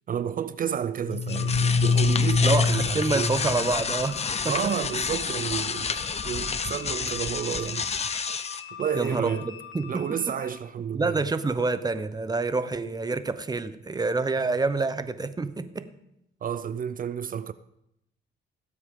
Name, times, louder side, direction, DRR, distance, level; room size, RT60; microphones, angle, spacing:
voice 1, 0.1-3.3 4.4-7.9 8.8-9.5 9.9-11.2 16.4-17.5, right 8 dB, 45° right, 0.5 m, -31 dB
sound 1, 1.1-8.6, left 5 dB, 30° left, 0.8 m, -26 dB
sound 2, 1.3-10.6, left 9 dB, 90° left, 1.6 m, -42 dB
voice 2, 2.4-4.5 8.9-10.1 10.9-15.9, right 3 dB, 20° right, 0.8 m, -27 dB
18.0 x 8.0 x 3.7 m
cardioid pair, 90°, 20 cm